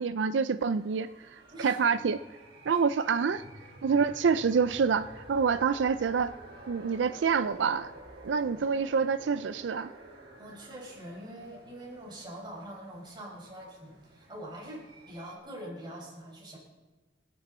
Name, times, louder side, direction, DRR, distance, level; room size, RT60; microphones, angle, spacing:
voice 1, 0.0-2.2 2.7-3.4 3.8-6.3 6.7-7.9 8.2-9.9, right 5 dB, 90° right, 13 dB, 0.4 m, -27 dB
sound 1, 0.6-15.4, right 1 dB, 60° right, 5.1 m, -51 dB
voice 2, 1.5-1.8 2.7-2.8 10.4-16.6, right 1 dB, 25° right, -3 dB, 5.6 m, -44 dB
27.5 x 10.0 x 4.3 m, 1.2 s
head